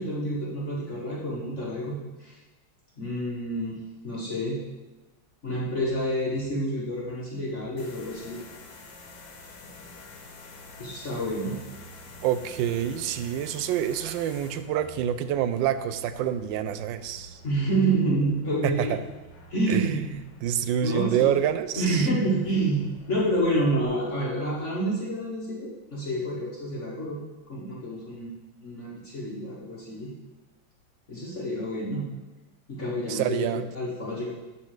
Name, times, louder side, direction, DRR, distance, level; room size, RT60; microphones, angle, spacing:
voice 1, 0.0-2.4 3.0-3.8 4.0-4.6 5.4-8.4 10.8-11.6 17.4-18.9 19.5-20.0 20.8-21.4 21.8-22.8 23.1-27.2 27.5-28.3 28.6-30.1 31.1-32.1 32.7-34.3, right 1 dB, 45° left, -5 dB, 1.6 m, -28 dB
sound 1, 7.8-23.9, left 1 dB, 75° left, 1.9 m, -47 dB
voice 2, 12.2-17.4 18.6-19.0 19.7-20.0 20.4-22.1 33.1-33.7, right 10 dB, 80° right, 11 dB, 1.3 m, -27 dB
9.8 x 4.2 x 6.4 m, 1.1 s
omnidirectional pair, 2.0 m